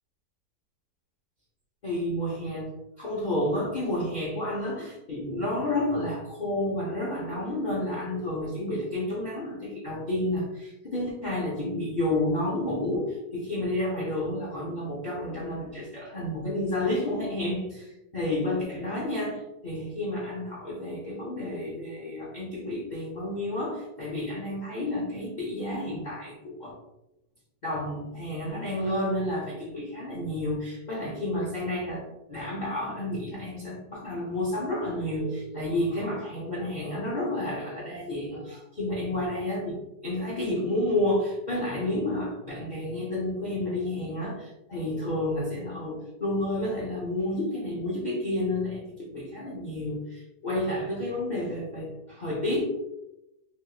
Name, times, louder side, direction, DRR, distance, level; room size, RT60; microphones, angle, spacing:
voice 1, 1.8-2.7 3.0-26.8 27.6-52.7, left 1 dB, 90° left, -6 dB, 0.4 m, -30 dB
3.4 x 2.8 x 2.3 m, 0.89 s
omnidirectional pair, 1.9 m